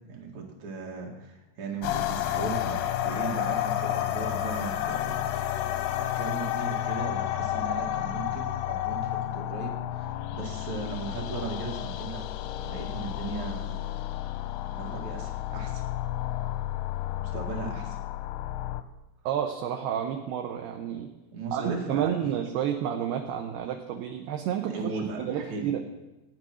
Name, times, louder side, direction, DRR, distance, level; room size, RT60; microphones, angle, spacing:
voice 1, 0.0-5.6 6.2-12.2 12.5-13.9 14.7-15.8 17.2-18.0 21.3-22.2 24.7-25.7, right 4 dB, 45° right, -1 dB, 3.0 m, -37 dB
sound 1, 1.8-18.8, left 12 dB, 85° left, 2.5 m, -31 dB
voice 2, 19.3-21.1 21.5-25.8, right 9 dB, 75° right, 3 dB, 2.6 m, -30 dB
14.0 x 9.6 x 6.2 m, 1.0 s
omnidirectional pair, 5.1 m